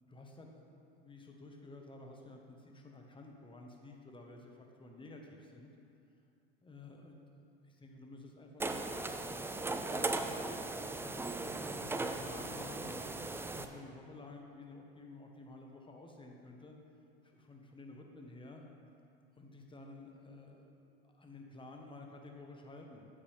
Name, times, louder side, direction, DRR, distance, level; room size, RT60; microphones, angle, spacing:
voice 1, 0.1-5.7 6.6-9.2 9.5-10.7 10.9-16.8 17.2-18.7 19.4-23.1, left 2 dB, 15° left, 1 dB, 1.3 m, -52 dB
sound 1, 8.6-13.7, right 2 dB, 10° right, 0.4 m, -38 dB
8.6 x 8.1 x 3.5 m, 2.5 s
hypercardioid pair, 85°, 31 cm